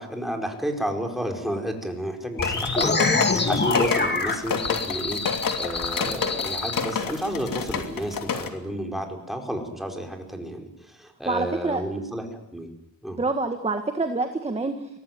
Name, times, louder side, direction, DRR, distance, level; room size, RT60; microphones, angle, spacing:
voice 1, 0.0-12.7 13.0-13.2, equal, ahead, 3 dB, 4.8 m, -31 dB
sound 1, 2.4-8.5, left 6 dB, 65° left, 2.9 m, -29 dB
sound 2, 2.4-6.8, left 3 dB, 30° left, 2.8 m, -26 dB
voice 2, 11.3-11.8 13.1-15.0, right 3 dB, 15° right, 7 dB, 1.7 m, -27 dB
24.0 x 18.0 x 9.4 m, 0.83 s
cardioid pair, 110°, 37 cm